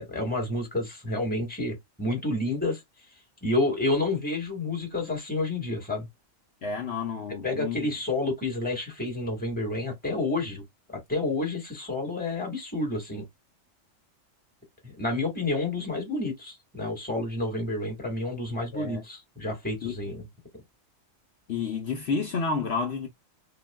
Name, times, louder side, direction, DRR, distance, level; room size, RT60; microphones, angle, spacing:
voice 1, 0.0-2.8 3.4-6.1 7.4-10.6 11.1-13.2 14.8-20.2, left 2 dB, 5° left, 1.3 m, -29 dB
voice 2, 6.6-7.9 18.7-19.0 19.8-19.9 21.5-23.1, left 4 dB, 60° left, 0.9 m, -30 dB
4.2 x 2.2 x 2.2 m
omnidirectional pair, 1.3 m